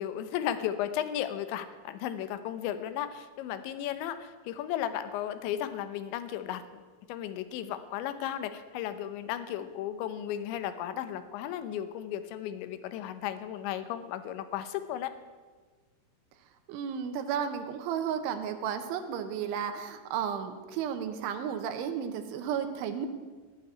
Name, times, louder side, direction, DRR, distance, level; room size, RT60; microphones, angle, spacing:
voice 1, 0.0-6.8 7.1-15.1, left 11 dB, 80° left, 11 dB, 3.2 m, -35 dB
voice 2, 16.7-23.1, right 8 dB, 90° right, 7 dB, 3.5 m, -33 dB
17.0 x 7.6 x 9.7 m, 1.4 s
omnidirectional pair, 5.4 m